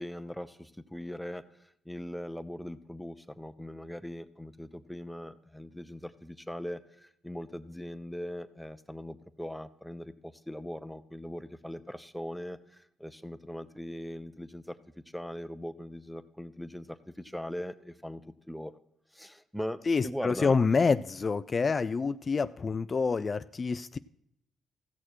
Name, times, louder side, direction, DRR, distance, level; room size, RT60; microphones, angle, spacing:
voice 1, 0.0-14.8 15.1-18.2 18.5-18.7 19.1-20.6, equal, ahead, 12 dB, 0.7 m, -40 dB
voice 2, 19.9-24.0, left 4 dB, 35° left, 13 dB, 0.3 m, -27 dB
15.5 x 6.6 x 4.5 m, 0.75 s
cardioid pair, 90°, 0 cm